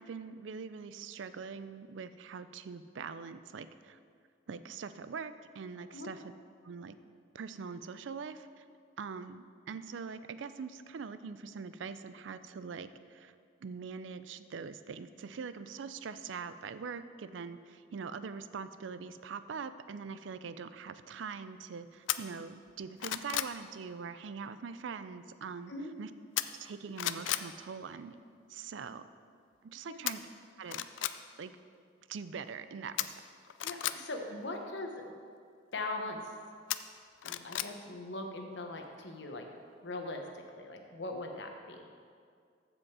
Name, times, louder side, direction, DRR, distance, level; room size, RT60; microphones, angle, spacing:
voice 1, 0.0-4.0 4.5-6.2 6.6-6.9 7.3-8.6 9.0-13.3 13.6-25.7 26.0-26.1 26.5-28.2 28.5-29.0 29.6-30.2 30.6-30.9 31.4-31.5 32.1-33.1, right 5 dB, 80° right, 12 dB, 0.4 m, -43 dB
sound 1, 22.1-22.2 22.7-23.6 26.4-26.7 27.0-27.5 30.1-30.2 30.6-31.2 33.0-34.0 36.7-37.7 38.1-38.2, left 13 dB, 85° left, 0.4 m, -34 dB
voice 2, 33.6-35.1 35.7-36.2 37.2-39.5 39.8-41.9, left 2 dB, 65° left, 3 dB, 1.1 m, -40 dB
14.5 x 5.3 x 4.8 m, 2.2 s
head